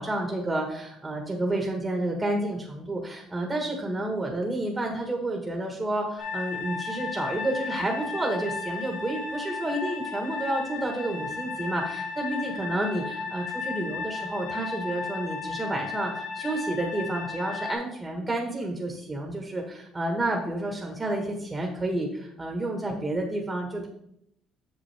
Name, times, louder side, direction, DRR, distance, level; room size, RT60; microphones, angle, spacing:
voice 1, 0.0-23.9, right 1 dB, 20° right, 1 dB, 1.3 m, -30 dB
sound 1, 6.2-17.7, left 4 dB, 60° left, 2.2 m, -34 dB
8.2 x 6.7 x 3.4 m, 0.75 s
cardioid pair, 125°, 0 cm